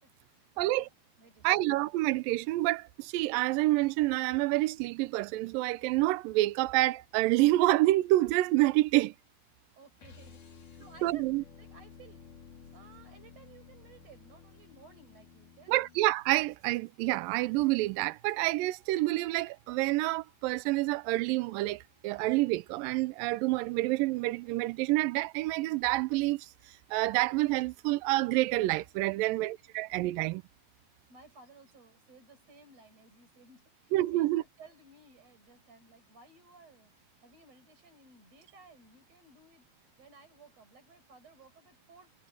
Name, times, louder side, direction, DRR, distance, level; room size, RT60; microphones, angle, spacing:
voice 1, 0.0-0.9 1.2-1.6 9.7-11.3 11.6-12.2 12.7-15.8 29.7-29.8 31.1-42.1, right 4 dB, 40° right, 6.9 m, -57 dB
voice 2, 1.4-9.1 11.0-11.4 15.7-30.4 33.9-34.4, right 18 dB, 85° right, 2.0 m, -28 dB
sound 1, 10.0-16.1, left 6 dB, 50° left, 4.6 m, -53 dB
omnidirectional pair, 4.7 m